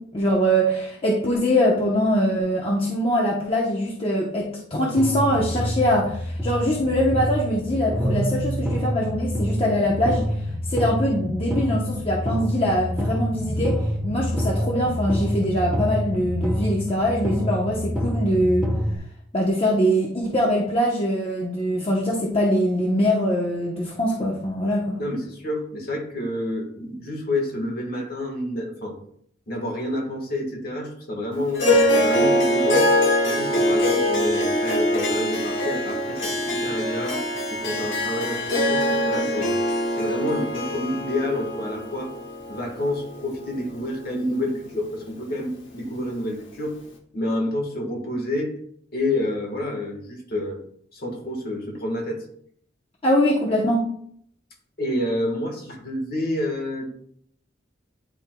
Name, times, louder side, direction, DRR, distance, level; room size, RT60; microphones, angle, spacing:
voice 1, 0.0-10.3 10.7-13.8 14.0-18.7 19.3-25.0 53.0-53.8, equal, 30° left, -3 dB, 0.8 m, -23 dB
sound 1, 5.0-19.0, equal, ahead, 1.0 m, -27 dB
voice 2, 25.0-29.0 29.5-32.9 33.2-37.2 37.5-39.6 39.9-42.1 42.5-46.8 47.1-48.5 48.9-50.6 50.9-52.3 54.8-56.9, left 1 dB, 50° left, 1 dB, 1.4 m, -28 dB
Harp, 31.6-44.1, left 1 dB, 75° left, 1.2 m, -23 dB
10.0 x 4.4 x 2.2 m, 0.66 s
head